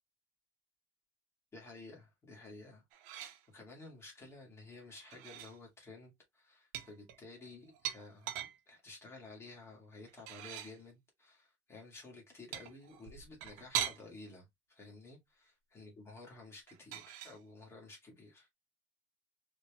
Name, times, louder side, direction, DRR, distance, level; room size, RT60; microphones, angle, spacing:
voice 1, 1.5-8.3 8.7-18.5, left 3 dB, 20° left, 1.9 m, -53 dB
sound 1, 2.9-3.4 4.9-5.6 6.7-8.6 10.1-10.8 12.5-14.0 16.7-17.4, right 10 dB, 75° right, 0.9 m, -41 dB
4.1 x 3.5 x 2.3 m
cardioid pair, 140°, 14 cm